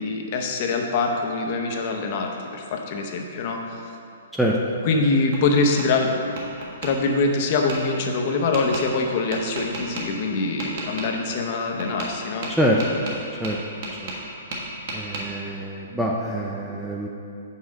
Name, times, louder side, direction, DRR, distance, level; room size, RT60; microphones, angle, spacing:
voice 1, 0.0-3.8 4.8-6.2 6.8-12.5 14.5-14.6, left 3 dB, 40° left, 2 dB, 0.7 m, -24 dB
Tap, 4.8-5.9 6.4-6.9 7.7-7.8 8.5-8.8 9.3-10.0 10.6-11.1 11.8-12.1 12.4-14.3 14.5-15.2, right 2 dB, 45° right, 1.3 m, -33 dB
voice 2, 12.5-12.8 13.4-13.6 14.9-17.1, equal, ahead, -3 dB, 0.4 m, -25 dB
5.6 x 4.7 x 6.3 m, 2.6 s
hypercardioid pair, 165°, 0 cm